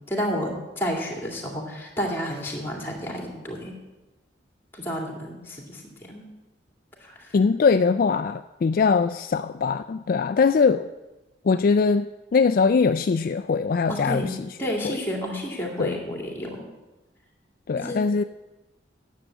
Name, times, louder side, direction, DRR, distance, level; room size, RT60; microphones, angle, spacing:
voice 1, 0.1-3.8 4.7-5.8 6.1-6.3 7.0-7.1 13.9-14.3 14.6-16.7 17.8-18.1, equal, 10° left, 0 dB, 2.3 m, -30 dB
voice 2, 7.3-10.9 11.4-12.1 12.3-15.0 15.8-16.0 17.7-18.2, left 5 dB, 50° left, 9 dB, 0.3 m, -22 dB
10.0 x 7.4 x 8.1 m, 1.1 s
head